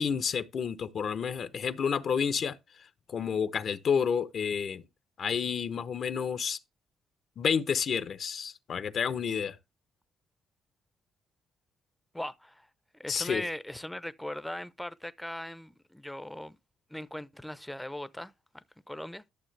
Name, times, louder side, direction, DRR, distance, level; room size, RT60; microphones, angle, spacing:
voice 1, 0.0-2.6 3.1-4.8 5.2-6.6 7.4-9.6 13.1-13.4, left 7 dB, 55° left, 0.8 m, -30 dB
voice 2, 12.1-12.7 13.0-16.6 16.9-19.3, left 1 dB, 5° left, 0.7 m, -39 dB
11.5 x 6.8 x 3.3 m
cardioid pair, 90°, 0 cm